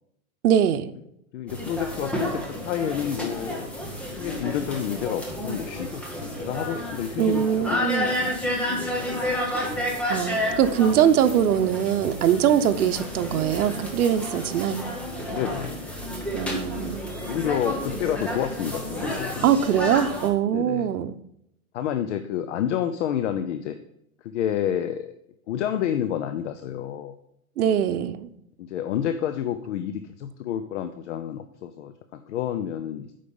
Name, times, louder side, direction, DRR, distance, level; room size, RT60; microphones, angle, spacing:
voice 1, 0.4-0.9 7.2-8.1 10.1-14.9 16.3-17.1 19.4-21.2 27.6-28.3, right 9 dB, 90° right, 9 dB, 0.9 m, -22 dB
voice 2, 1.3-3.7 4.2-10.0 12.6-12.7 15.3-15.8 17.3-19.5 20.5-20.9 21.7-23.8 24.2-25.1 25.5-27.2 27.6-27.8 28.6-33.1, left 9 dB, 55° left, 9 dB, 0.7 m, -30 dB
sound 1, 1.5-20.3, left 1 dB, 5° left, 0.8 m, -31 dB
8.5 x 5.6 x 5.3 m, 0.79 s
supercardioid pair, 165°, 43 cm